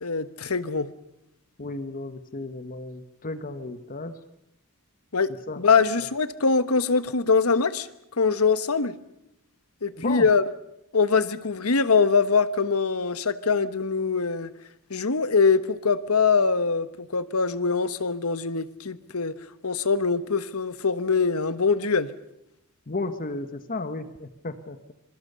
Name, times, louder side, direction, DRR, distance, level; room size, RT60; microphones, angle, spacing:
voice 1, 0.0-0.9 5.1-7.9 8.2-9.0 9.8-10.4 10.9-14.5 14.9-19.4 19.6-22.1, left 4 dB, 85° left, 13 dB, 1.3 m, -23 dB
voice 2, 1.6-4.1 5.5-5.6 9.9-10.3 22.9-24.9, left 2 dB, 40° left, 10 dB, 1.2 m, -33 dB
25.5 x 23.5 x 6.8 m, 0.83 s
head